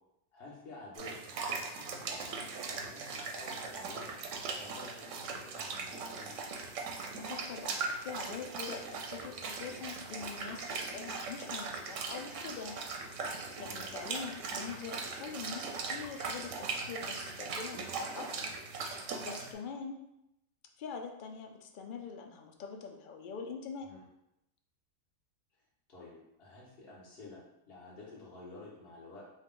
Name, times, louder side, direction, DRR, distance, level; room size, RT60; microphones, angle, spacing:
voice 1, 0.3-6.4 13.6-14.0 23.8-24.0 25.9-29.3, left 2 dB, 45° left, -6 dB, 1.3 m, -51 dB
sound 1, 0.9-19.5, right 4 dB, 65° right, 0.9 m, -39 dB
voice 2, 7.1-12.9 13.2-18.5 18.9-20.0 20.8-23.9, left 6 dB, 80° left, 3 dB, 0.4 m, -44 dB
5.3 x 2.4 x 3.8 m, 0.85 s
omnidirectional pair, 1.5 m